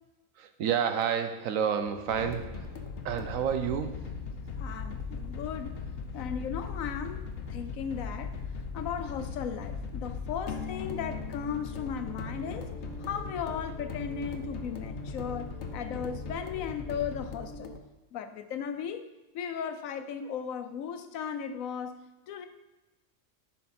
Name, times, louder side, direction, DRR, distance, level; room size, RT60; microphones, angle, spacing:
voice 1, 0.4-2.8 3.0-4.1, right 8 dB, 80° right, 8 dB, 1.1 m, -30 dB
sound 1, 2.1-17.8, left 4 dB, 60° left, 1.0 m, -38 dB
voice 2, 4.6-5.8 6.1-7.2 7.5-8.3 8.7-12.7 13.0-17.7 18.1-19.0 19.3-22.0 22.3-22.5, left 7 dB, 85° left, 8 dB, 1.1 m, -36 dB
10.5 x 4.3 x 4.2 m, 1.1 s
omnidirectional pair, 1.4 m